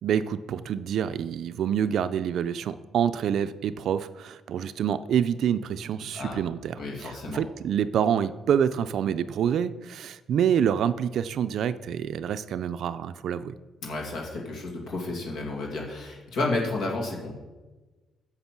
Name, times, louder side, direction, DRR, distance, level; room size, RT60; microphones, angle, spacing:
voice 1, 0.0-13.5, right 8 dB, 70° right, 13 dB, 0.5 m, -27 dB
voice 2, 6.8-7.4 13.8-17.3, left 2 dB, 70° left, -1 dB, 2.2 m, -31 dB
9.7 x 6.7 x 6.0 m, 1.2 s
cardioid pair, 90°, 0 cm